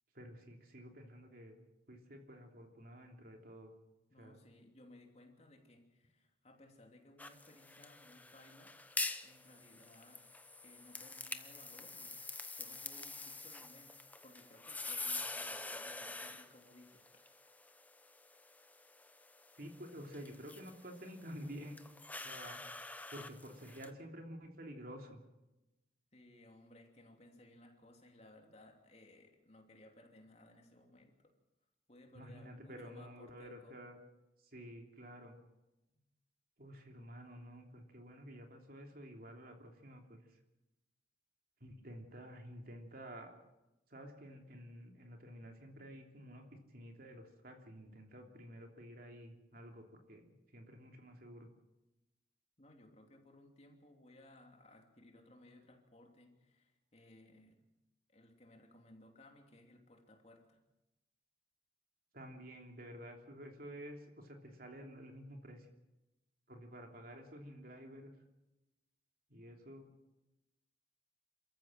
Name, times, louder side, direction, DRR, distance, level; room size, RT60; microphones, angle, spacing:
voice 1, 0.1-1.6 1.9-3.7 4.2-4.4 19.5-21.8 22.2-22.6 23.1-25.2 32.1-34.0 34.5-35.3 36.6-40.2 41.6-43.3 43.9-51.5 62.1-65.7 66.5-68.1 69.3-69.9, equal, 50° right, 3 dB, 3.2 m, -51 dB
voice 2, 4.1-10.2 10.6-12.2 12.5-13.9 14.2-17.5 26.1-31.3 31.9-33.8 35.9-36.0 52.6-57.6 58.1-60.6, left 1 dB, 35° left, 3 dB, 2.9 m, -61 dB
sound 1, 7.2-23.9, left 3 dB, 10° left, 0.9 m, -46 dB
27.5 x 14.0 x 7.6 m, 0.98 s
head